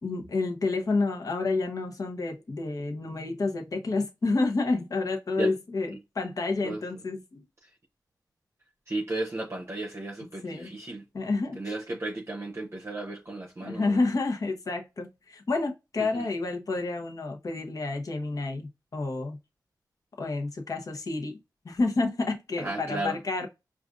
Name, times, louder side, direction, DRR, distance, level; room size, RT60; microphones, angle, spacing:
voice 1, 0.0-7.4 10.4-10.7 11.1-11.7 13.7-19.4 20.2-21.4 21.6-23.5, left 3 dB, 50° left, 0.9 m, -29 dB
voice 2, 8.9-11.0 11.6-14.0 16.0-16.3 22.6-23.2, right 2 dB, 35° right, 0.7 m, -34 dB
4.9 x 2.5 x 2.5 m
wide cardioid pair, 85°, 7 cm